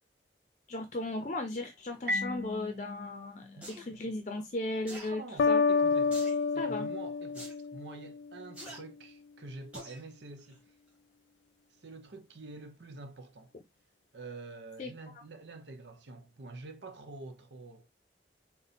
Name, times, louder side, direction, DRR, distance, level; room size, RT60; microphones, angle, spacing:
voice 1, 0.7-5.2 5.5-5.6 6.6-6.9 14.8-14.9, left 2 dB, 40° left, 0.6 m, -36 dB
Marimba xylophone, 2.1-4.7, left 1 dB, 60° right, 1.2 m, -38 dB
voice 2, 3.5-4.0 5.1-6.2 6.5-10.6 11.8-13.5 14.1-17.9, right 3 dB, 80° right, 0.8 m, -47 dB
sound 1, 3.6-3.8 4.9-5.1 6.1-6.4 7.3-7.5 8.5-8.8 9.7-10.0 10.5-10.6, right 1 dB, 5° right, 1.5 m, -45 dB
sound 2, 5.4-8.2, left 4 dB, 85° left, 0.3 m, -28 dB
4.1 x 2.2 x 4.2 m
head